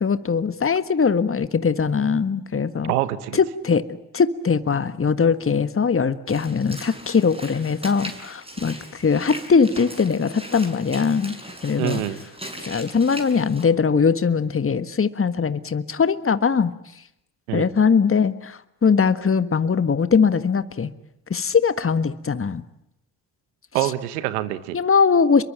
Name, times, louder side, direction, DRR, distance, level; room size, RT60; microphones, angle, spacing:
voice 1, 0.0-2.9 3.3-3.9 4.1-11.4 11.6-12.0 12.6-16.7 17.5-20.9 21.3-22.6 24.7-25.4, left 5 dB, 30° left, 12 dB, 1.6 m, -21 dB
voice 2, 2.9-3.4 11.8-12.2 17.5-17.7 23.7-24.8, right 14 dB, 90° right, 15 dB, 1.4 m, -25 dB
Walk footsteps / Splash splatter, 6.3-13.6, equal, 15° right, 7.5 m, -39 dB
26.5 x 23.0 x 8.9 m, 0.82 s
hypercardioid pair, 50°, 43 cm